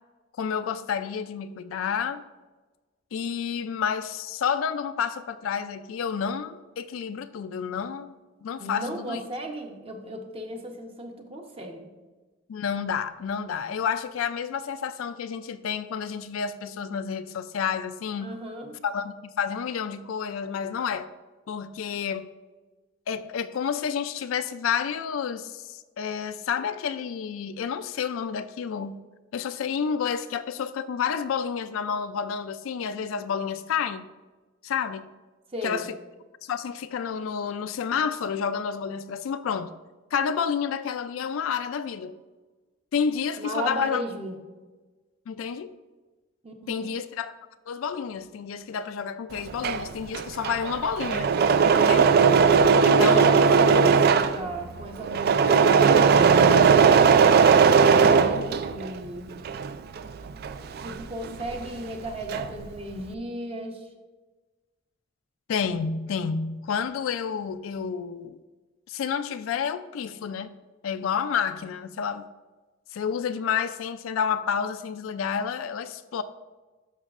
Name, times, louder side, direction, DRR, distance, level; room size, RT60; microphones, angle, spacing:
voice 1, 0.4-2.2 3.1-8.1 8.4-9.2 12.5-18.3 18.8-21.1 21.5-22.3 23.1-29.0 29.3-34.1 34.6-35.1 35.6-36.0 36.4-39.7 40.1-42.2 42.9-44.0 45.3-45.7 46.7-47.3 47.7-51.3 51.8-52.2 52.8-53.3 65.5-68.4 68.9-70.6 70.8-72.3 72.9-76.2, left 7 dB, 85° left, 0.3 m, -30 dB
voice 2, 8.6-11.9 18.2-18.8 35.5-35.9 43.4-44.4 46.4-46.9 52.7-57.1 57.7-59.4 60.8-63.9, equal, 30° right, 0.8 m, -35 dB
Engine / Mechanisms, 49.4-59.0 59.3-61.7 61.9-62.7, right 5 dB, 50° right, 0.3 m, -19 dB
11.0 x 6.1 x 2.4 m
head